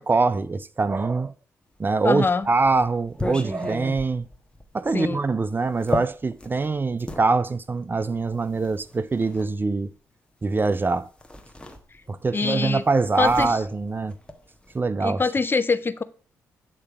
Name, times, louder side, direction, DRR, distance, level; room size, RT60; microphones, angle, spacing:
voice 1, 0.0-1.3 1.8-4.3 4.7-9.9 10.4-11.1 12.1-14.1 14.7-15.2, right 3 dB, 30° right, 0.4 m, -23 dB
sound 1, 1.9-7.3 8.2-9.5 10.7-10.9 11.2-12.3 12.6-14.8, left 1 dB, 15° left, 1.3 m, -34 dB
voice 2, 2.0-2.5 4.9-5.2 12.3-12.8 13.2-13.6 15.0-16.0, left 4 dB, 30° left, 0.6 m, -24 dB
8.7 x 3.3 x 4.7 m
hypercardioid pair, 50°, 7 cm